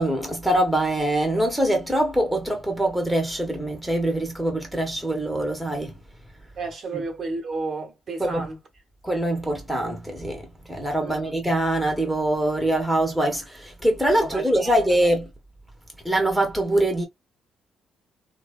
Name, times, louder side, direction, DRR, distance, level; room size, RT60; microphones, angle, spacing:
voice 1, 0.0-5.9 6.9-7.0 8.2-8.5 9.0-15.3 16.0-17.1, right 1 dB, ahead, 1.0 m, -23 dB
voice 2, 6.6-8.6 11.0-11.3 14.2-14.7, right 3 dB, 55° right, 1.1 m, -32 dB
2.7 x 2.3 x 2.3 m
cardioid pair, 90°, 0 cm